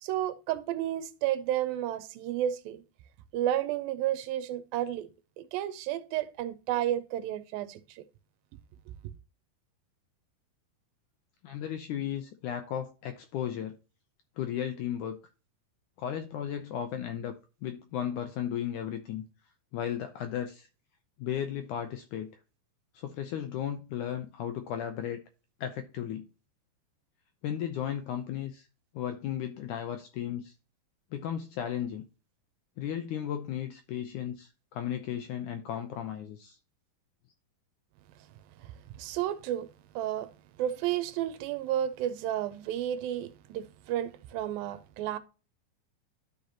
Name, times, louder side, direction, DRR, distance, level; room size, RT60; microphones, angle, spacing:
voice 1, 0.0-2.8 3.3-5.1 5.4-8.0 38.6-39.7 40.0-40.3 40.6-45.2, right 12 dB, 85° right, 2.4 m, -32 dB
voice 2, 11.4-13.8 14.4-15.2 16.0-17.3 17.6-19.2 19.7-20.7 21.2-22.3 22.9-25.2 25.6-26.3 27.4-28.7 28.9-30.5 31.1-32.0 32.8-36.6, left 10 dB, 80° left, 1.8 m, -35 dB
12.0 x 5.1 x 2.9 m
omnidirectional pair, 4.3 m